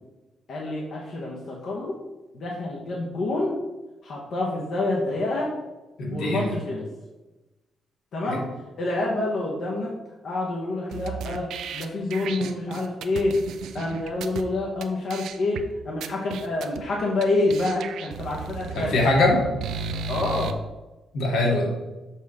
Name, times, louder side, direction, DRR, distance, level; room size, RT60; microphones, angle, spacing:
voice 1, 0.5-2.0 2.3-3.6 4.0-5.5 6.1-6.9 8.1-8.5 8.8-9.9 10.2-13.4 13.7-19.0 20.1-20.6, left 2 dB, 50° left, -3 dB, 1.1 m, -27 dB
voice 2, 6.0-6.5 8.2-8.4 18.7-19.4 21.1-21.7, left 2 dB, 85° left, -2 dB, 2.3 m, -22 dB
sound 1, 10.9-14.4 14.8-14.9 15.1-15.6 16.0-16.8 17.2-17.3 17.5-20.5, right 5 dB, 85° right, 0.6 m, -34 dB
7.2 x 3.6 x 6.4 m, 1.1 s
cardioid pair, 170°, 0 cm